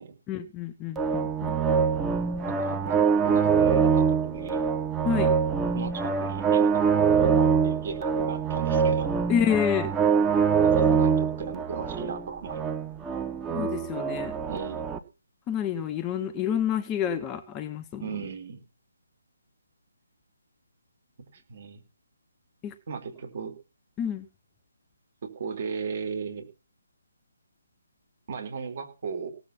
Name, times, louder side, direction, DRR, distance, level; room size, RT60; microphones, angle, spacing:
voice 1, 0.3-1.6 2.8-2.9 5.0-5.3 9.3-9.9 13.5-14.4 15.5-18.1 22.6-22.7 24.0-24.3, left 9 dB, 15° left, 0.9 m, -28 dB
sound 1, 1.0-15.0, right 6 dB, 10° right, 1.3 m, -24 dB
voice 2, 2.5-4.7 5.7-9.1 10.6-12.6 14.5-14.9 18.0-18.6 21.3-21.8 22.9-23.5 25.2-26.4 28.3-29.3, right 5 dB, 40° right, 4.4 m, -36 dB
18.0 x 7.9 x 5.9 m
figure-of-eight pair, 145°, 0 cm